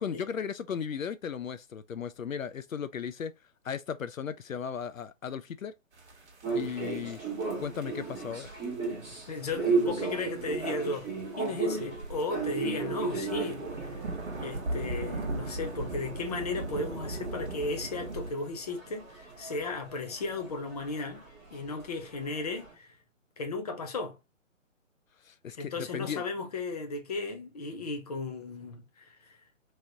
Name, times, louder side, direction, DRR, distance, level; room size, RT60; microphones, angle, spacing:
voice 1, 0.0-3.3 3.6-5.7 6.5-7.2 7.6-8.5 25.2-26.2, left 7 dB, 80° left, 0.5 m, -36 dB
sound 1, 5.9-18.3, right 2 dB, 60° right, 1.1 m, -39 dB
sound 2, 6.4-17.3 17.5-22.7, right 4 dB, 10° right, 0.9 m, -35 dB
voice 2, 9.3-14.1 14.4-21.2 21.5-22.9 23.4-24.2 25.6-29.4, left 3 dB, 30° left, 0.7 m, -35 dB
3.1 x 2.9 x 2.6 m
figure-of-eight pair, 135°, 40 cm